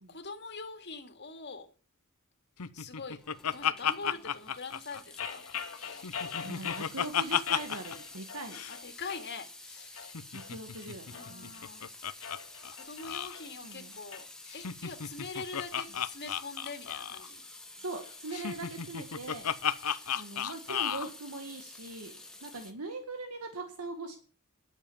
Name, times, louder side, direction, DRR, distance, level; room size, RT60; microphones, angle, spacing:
voice 1, 0.1-1.7 2.7-5.4 8.7-10.0 11.1-11.9 12.7-14.3 14.5-17.4, left 4 dB, 50° left, 2.2 m, -43 dB
Laughter, 2.6-5.5 5.9-8.0 8.2-8.3 8.5-8.8 10.0-12.4 12.6-12.7 13.0-13.3 14.5-17.3 18.3-21.1, left 8 dB, 90° left, 0.8 m, -33 dB
Water tap faucet / Sink (filling or washing) / Drip, 3.1-22.7, left 2 dB, 5° left, 1.4 m, -50 dB
sound 1, 5.2-6.9 7.4-8.4 8.7-9.3 9.8-11.6 12.1-14.2, left 7 dB, 70° left, 1.8 m, -41 dB
voice 2, 6.4-8.6 10.3-11.6 13.6-13.9 17.8-19.5 20.1-22.1 22.4-24.2, right 3 dB, 90° right, 1.8 m, -41 dB
11.5 x 7.5 x 7.0 m
head